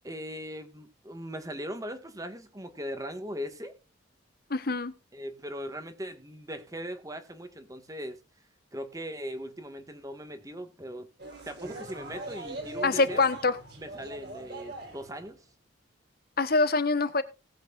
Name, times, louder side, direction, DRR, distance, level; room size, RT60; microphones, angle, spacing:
voice 1, 0.0-3.7 5.1-8.2 8.7-11.1 11.4-13.3 13.8-15.4, equal, 15° right, 1.6 m, -39 dB
voice 2, 4.5-4.9 12.8-13.6 16.4-17.2, left 3 dB, 50° left, 1.2 m, -25 dB
sound 1, 11.2-15.3, right 2 dB, 55° right, 3.8 m, -41 dB
19.0 x 8.1 x 2.5 m
head